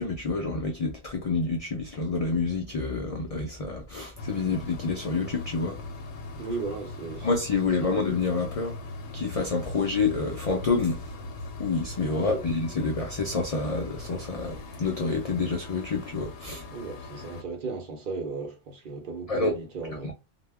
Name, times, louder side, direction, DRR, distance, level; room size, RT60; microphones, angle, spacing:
voice 1, 0.0-5.8 7.2-8.7 9.1-11.0 11.6-16.6 19.3-19.6 20.0-20.1, left 4 dB, 60° left, 0.3 m, -28 dB
sound 1, 4.2-17.4, left 2 dB, 75° left, 0.9 m, -40 dB
voice 2, 6.4-7.3 7.8-8.0 12.1-12.4 16.7-20.1, right 4 dB, 50° right, 0.8 m, -35 dB
2.2 x 2.0 x 3.4 m
omnidirectional pair, 1.2 m